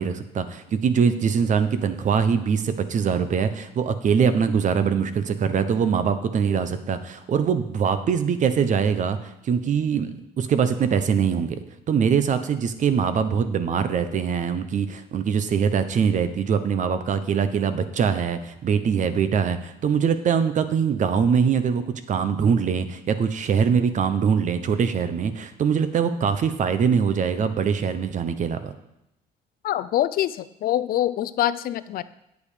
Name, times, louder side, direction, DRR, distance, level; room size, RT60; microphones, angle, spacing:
voice 1, 0.0-9.2 9.4-11.6 11.9-28.7, right 6 dB, 45° right, 11 dB, 0.9 m, -23 dB
voice 2, 29.6-32.0, left 12 dB, 60° left, 14 dB, 0.5 m, -24 dB
8.7 x 8.3 x 5.0 m, 0.86 s
cardioid pair, 110°, 17 cm